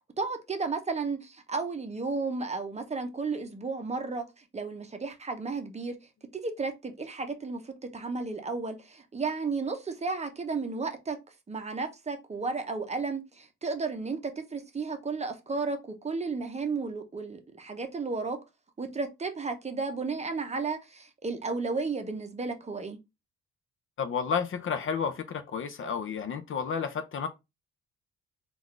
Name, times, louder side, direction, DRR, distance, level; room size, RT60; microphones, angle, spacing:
voice 1, 0.2-6.0 6.3-11.2 11.5-18.4 18.8-23.0, right 4 dB, 20° right, 0.7 m, -33 dB
voice 2, 24.0-27.3, left 6 dB, 45° left, 0.5 m, -31 dB
3.7 x 2.5 x 3.1 m
cardioid pair, 90°, 30 cm